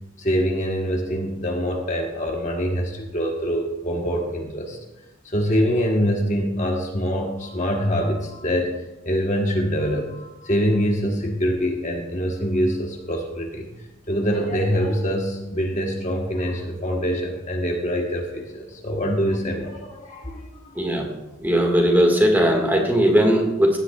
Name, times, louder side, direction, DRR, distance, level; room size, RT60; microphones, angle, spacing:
voice 1, 0.2-4.8 5.2-8.7 9.0-13.7 14.1-20.8, equal, 35° left, 1 dB, 1.2 m, -24 dB
voice 2, 20.8-21.1 21.4-23.8, equal, 10° right, 1 dB, 1.8 m, -18 dB
16.0 x 11.0 x 2.4 m, 0.98 s
head